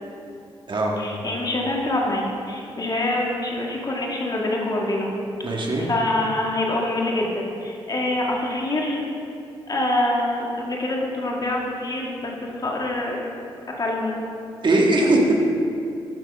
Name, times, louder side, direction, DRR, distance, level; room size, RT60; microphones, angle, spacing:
voice 1, 1.0-5.1 5.5-9.0 9.7-13.3 13.7-14.2, left 1 dB, 40° left, -1 dB, 1.7 m, -25 dB
voice 2, 5.4-5.9 14.6-15.4, right 2 dB, 50° right, -1 dB, 1.6 m, -19 dB
12.0 x 6.0 x 3.4 m, 2.6 s
supercardioid pair, 60°, 10 cm